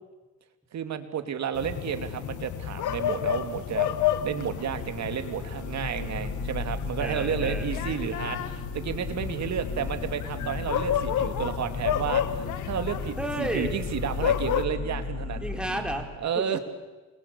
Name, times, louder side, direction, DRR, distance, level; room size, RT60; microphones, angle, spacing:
voice 1, 0.7-3.9 4.2-15.4 16.2-16.6, right 8 dB, 65° right, 9 dB, 2.7 m, -31 dB
sound 1, 1.5-14.6, left 10 dB, 80° left, 1.8 m, -31 dB
sound 2, 2.8-16.0, left 4 dB, 45° left, 3.5 m, -36 dB
voice 2, 7.0-7.7 13.2-13.7 15.4-16.6, right 1 dB, 5° right, 3 dB, 4.0 m, -32 dB
28.5 x 22.0 x 8.6 m, 1.2 s
cardioid pair, 90°, 30 cm